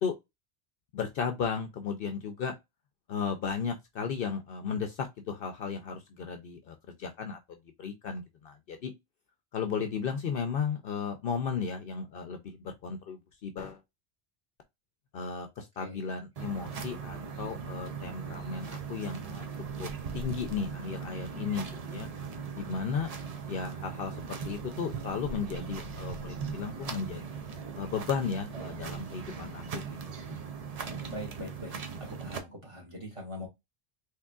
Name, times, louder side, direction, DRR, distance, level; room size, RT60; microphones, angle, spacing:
voice 1, 0.9-2.5 3.1-7.4 7.8-8.9 9.5-13.8 15.1-19.5 19.8-22.1 22.5-23.1 23.5-27.4 27.8-30.0, left 6 dB, 60° left, 0.7 m, -35 dB
voice 2, 15.8-16.2 31.1-33.5, left 1 dB, 30° right, 1.6 m, -42 dB
sound 1, 16.4-32.4, right 6 dB, 45° right, 0.5 m, -39 dB
3.6 x 3.0 x 2.3 m
omnidirectional pair, 1.1 m